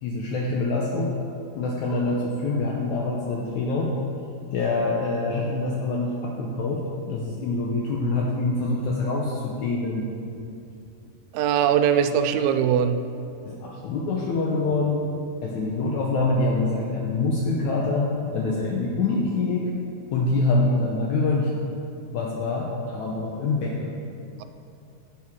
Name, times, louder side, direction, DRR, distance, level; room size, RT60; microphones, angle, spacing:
voice 1, 0.0-1.1 1.6-3.9 4.5-10.1 13.4-15.1 15.4-19.7 20.1-21.5 22.1-23.9, left 3 dB, 80° left, -2 dB, 1.7 m, -25 dB
voice 2, 11.3-13.0, right 8 dB, 90° right, 9 dB, 2.4 m, -21 dB
10.5 x 9.2 x 3.6 m, 2.6 s
omnidirectional pair, 4.3 m